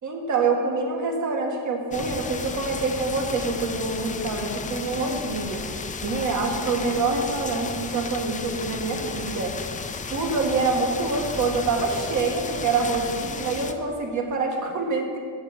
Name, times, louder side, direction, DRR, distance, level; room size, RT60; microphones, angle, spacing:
voice 1, 0.0-5.6 6.0-9.5 10.1-15.2, right 3 dB, 45° right, 1 dB, 1.7 m, -26 dB
sound 1, 1.9-13.7, left 4 dB, 20° left, 0.4 m, -34 dB
8.9 x 7.7 x 7.3 m, 2.1 s
cardioid pair, 175°, 40 cm